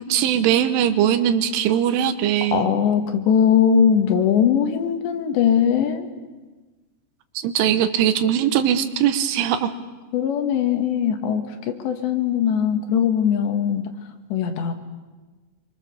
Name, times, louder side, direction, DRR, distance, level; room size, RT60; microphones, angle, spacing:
voice 1, 0.1-2.6 7.4-9.7, right 10 dB, 85° right, 10 dB, 3.6 m, -20 dB
voice 2, 2.5-6.1 10.1-13.9 14.3-14.7, left 8 dB, 70° left, 6 dB, 3.5 m, -20 dB
26.5 x 24.5 x 6.9 m, 1.2 s
omnidirectional pair, 5.6 m